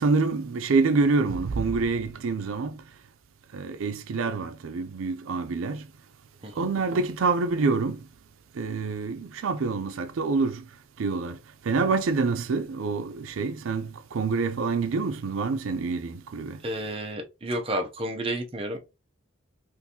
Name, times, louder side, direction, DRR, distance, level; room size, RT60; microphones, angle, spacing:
voice 1, 0.0-2.7 3.5-5.8 6.6-8.0 8.6-10.6 11.0-11.4 11.7-16.6, right 4 dB, 80° right, 0.4 m, -26 dB
voice 2, 16.6-18.8, right 1 dB, 25° right, 0.5 m, -31 dB
3.7 x 2.5 x 2.7 m
head